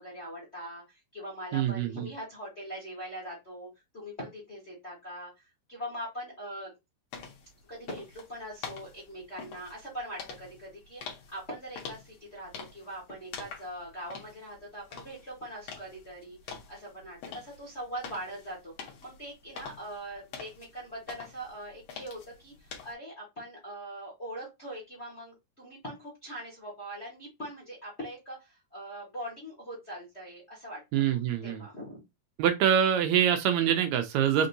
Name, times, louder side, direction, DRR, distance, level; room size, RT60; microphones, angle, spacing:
voice 1, 0.0-6.7 7.7-18.7 19.0-31.2 31.4-32.0, equal, 40° left, 0.9 m, -42 dB
voice 2, 1.5-2.1 30.9-31.7 32.4-34.5, right 9 dB, 80° right, 1.8 m, -25 dB
sound 1, 7.1-22.9, left 6 dB, 65° left, 2.0 m, -46 dB
5.2 x 2.7 x 2.6 m
omnidirectional pair, 3.4 m